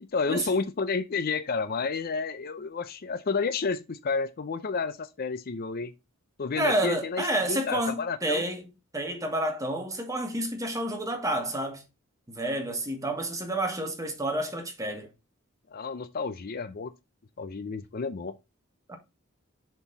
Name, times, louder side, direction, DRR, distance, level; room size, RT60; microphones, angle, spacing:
voice 1, 0.1-5.9 6.4-8.4 15.7-16.9 17.4-18.3, left 4 dB, 45° left, 0.5 m, -30 dB
voice 2, 6.6-8.6 8.9-11.8 12.3-15.1 18.9-19.0, right 1 dB, 15° right, 1.5 m, -29 dB
7.1 x 4.4 x 4.0 m
head